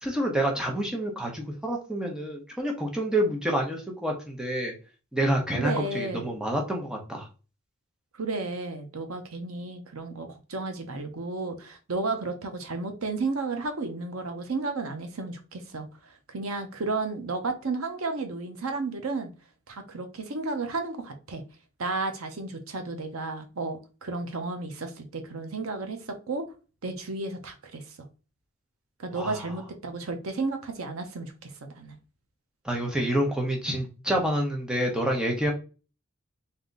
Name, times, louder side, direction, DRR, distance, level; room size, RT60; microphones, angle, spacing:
voice 1, 0.0-4.7 5.1-7.3 29.1-29.5 32.6-35.5, right 1 dB, 5° right, 0 dB, 0.8 m, -28 dB
voice 2, 5.6-6.2 8.2-15.9 16.3-19.3 19.7-21.4 21.8-26.5 26.8-27.8 29.0-31.9, right 3 dB, 80° right, 6 dB, 0.8 m, -33 dB
3.6 x 2.8 x 3.9 m, 0.33 s
head